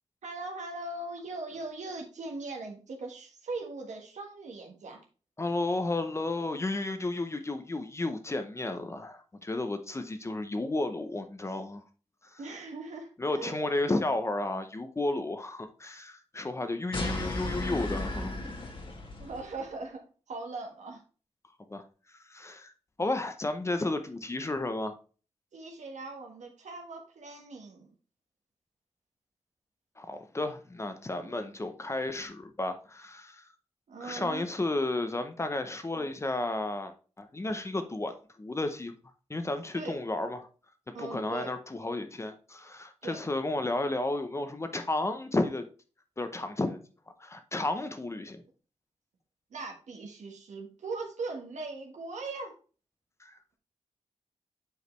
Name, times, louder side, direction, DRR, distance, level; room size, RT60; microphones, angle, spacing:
voice 1, 0.2-5.0 12.4-13.6 19.2-21.0 25.5-27.9 31.2-31.4 33.9-34.4 39.7-40.0 40.9-41.5 43.0-43.2 49.5-52.5, right 3 dB, 85° right, 1.4 m, -40 dB
voice 2, 5.4-11.8 12.2-12.4 13.2-18.4 21.7-21.8 22.3-22.7 23.0-25.0 30.0-33.4 34.0-38.9 39.3-40.5 41.0-45.6 46.2-46.8 47.2-48.4 53.2-53.4, left 2 dB, 25° left, 0.7 m, -32 dB
sound 1, 16.9-19.5, left 1 dB, 45° left, 1.4 m, -35 dB
8.1 x 4.8 x 3.2 m
wide cardioid pair, 120°, 12 cm